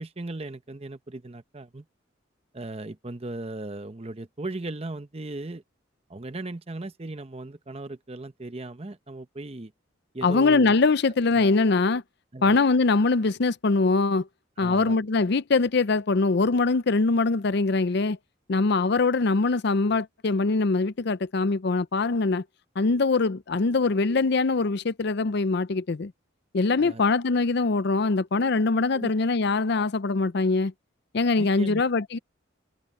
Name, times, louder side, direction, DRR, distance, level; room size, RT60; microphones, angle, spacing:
voice 1, 0.0-1.8 2.5-5.6 6.1-9.7 10.1-10.7 11.3-11.5 12.3-12.6 14.6-15.0 26.8-27.0 28.9-29.1 31.4-31.8, right 2 dB, 30° right, 0.8 m, -37 dB
voice 2, 10.2-12.0 12.4-14.3 14.6-18.2 18.5-22.4 22.8-26.1 26.5-30.7 31.1-32.2, left 3 dB, 55° left, 0.5 m, -23 dB
open air
head